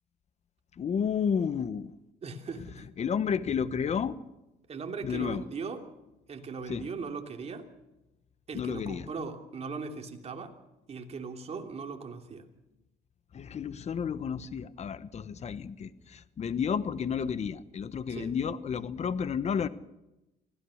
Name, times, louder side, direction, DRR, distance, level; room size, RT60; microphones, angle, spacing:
voice 1, 0.8-1.9 3.0-4.2 5.0-5.4 6.7-6.9 8.5-9.1 13.3-19.7, left 7 dB, 40° left, 15 dB, 1.2 m, -31 dB
voice 2, 2.2-2.9 4.7-5.9 6.3-7.7 8.5-10.5 10.9-12.5 18.1-18.4, right 4 dB, 40° right, 4 dB, 3.0 m, -39 dB
24.5 x 16.0 x 6.5 m, 0.97 s
cardioid pair, 110°, 17 cm